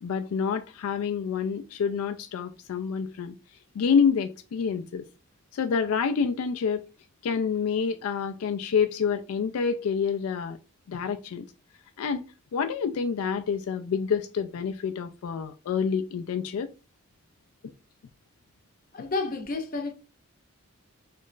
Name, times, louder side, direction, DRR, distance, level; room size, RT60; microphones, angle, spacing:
voice 1, 0.0-3.3 3.8-5.1 5.5-6.8 7.2-10.6 10.9-11.5 12.0-12.2 12.5-16.7, left 6 dB, 85° left, 0.3 m, -27 dB
voice 2, 18.9-19.9, left 3 dB, 40° left, 0.7 m, -30 dB
4.3 x 3.0 x 2.4 m
head